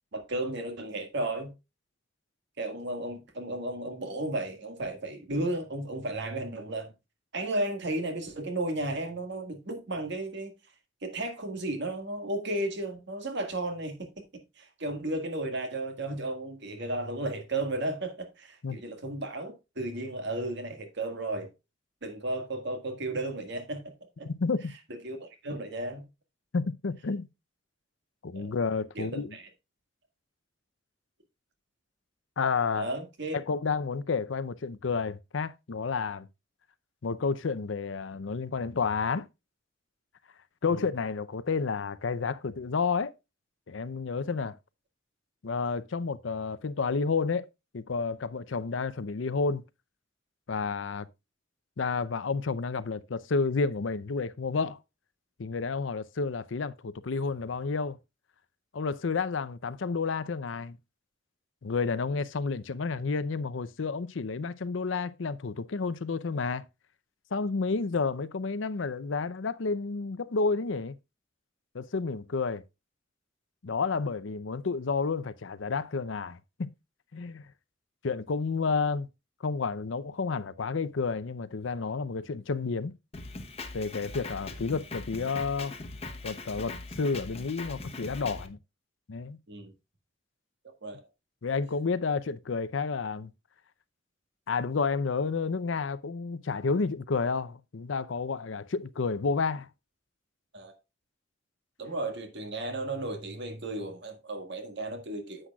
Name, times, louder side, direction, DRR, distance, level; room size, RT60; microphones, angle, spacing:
voice 1, 0.1-1.5 2.6-6.9 7.3-10.5 11.0-14.1 14.6-21.5 22.0-24.3 25.0-26.0 28.3-28.5 29.0-29.5 32.7-33.4 40.7-40.8 89.5-89.7 90.6-91.0 100.5-100.7 101.8-105.5, right 2 dB, 65° right, 1.7 m, -34 dB
voice 2, 24.2-24.6 26.5-27.3 28.2-29.4 32.4-32.9 33.3-36.3 37.0-39.3 40.6-43.1 43.7-44.6 45.4-47.5 47.7-49.6 50.5-51.1 51.8-54.8 55.4-58.0 58.7-60.8 61.6-66.6 67.3-70.9 71.7-72.6 73.6-76.7 77.1-77.4 78.0-79.1 79.4-82.9 83.7-85.7 86.2-88.6 89.1-89.4 91.4-93.3 94.5-99.7, left 4 dB, 70° left, 0.6 m, -30 dB
Drum kit, 83.1-88.5, left 3 dB, 35° left, 1.0 m, -41 dB
9.9 x 7.9 x 2.3 m
head